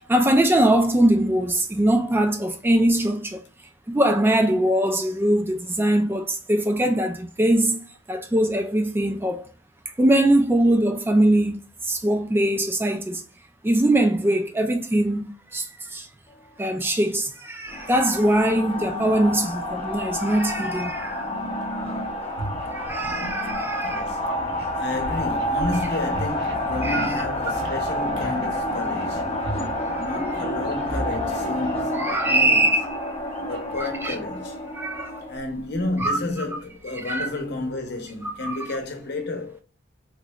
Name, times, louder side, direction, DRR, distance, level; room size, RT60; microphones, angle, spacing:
voice 1, 0.1-3.4 3.9-9.4 10.0-11.6 11.8-13.2 13.6-16.1 16.6-21.3 21.8-21.9 22.7-24.1 26.8-27.1 29.9-30.0 32.0-32.9 33.8-34.1 34.7-35.1 36.0-36.2 37.0-37.3 38.4-38.6, right 1 dB, 10° right, 0.3 m, -22 dB
sound 1, 17.7-35.4, left 1 dB, 35° left, 0.8 m, -29 dB
sound 2, 19.8-20.1 21.6-21.7 22.0-32.4 32.8-34.2 34.6-36.6, right 1 dB, 80° right, 1.0 m, -37 dB
voice 2, 23.9-24.5 24.8-29.4 30.0-32.7 33.5-34.6 35.3-39.6, left 2 dB, 60° left, 0.8 m, -31 dB
3.6 x 3.1 x 2.3 m
head